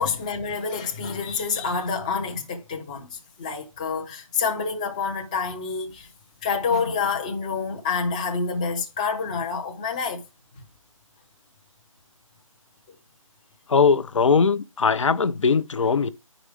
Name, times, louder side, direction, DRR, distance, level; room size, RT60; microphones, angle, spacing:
voice 1, 0.0-6.1 6.4-10.2, left 5 dB, 15° left, 0.5 m, -28 dB
voice 2, 13.7-16.1, left 5 dB, 60° left, 0.6 m, -20 dB
10.0 x 4.9 x 3.4 m
figure-of-eight pair, 160°, 18 cm